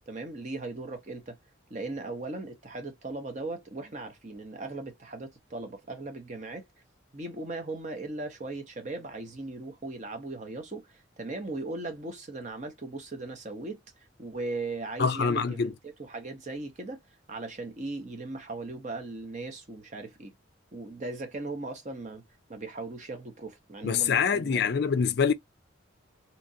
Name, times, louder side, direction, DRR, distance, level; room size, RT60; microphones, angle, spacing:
voice 1, 0.1-1.4 1.7-6.7 7.1-13.8 14.2-17.0 17.3-20.3 20.7-22.2 22.5-24.7, right 2 dB, 35° right, 0.8 m, -38 dB
voice 2, 15.0-15.7 23.8-25.3, left 6 dB, 55° left, 0.4 m, -25 dB
2.9 x 2.4 x 2.7 m
head